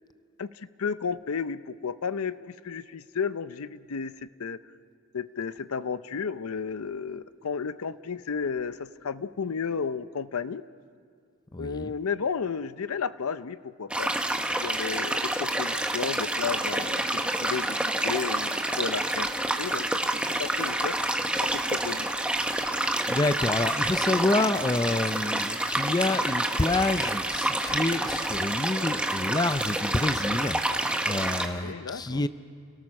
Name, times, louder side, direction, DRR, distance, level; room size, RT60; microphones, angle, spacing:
voice 1, 0.4-4.6 5.1-10.6 11.6-14.1 14.4-17.8 18.0-19.3 19.6-21.0 21.4-22.1 31.5-32.2, left 6 dB, 75° left, 14 dB, 0.6 m, -33 dB
voice 2, 11.5-11.9 23.1-32.3, left 2 dB, 20° left, 12 dB, 0.5 m, -28 dB
sound 1, 13.9-31.5, right 1 dB, 5° right, 1.2 m, -28 dB
29.5 x 18.5 x 6.2 m, 2.2 s
head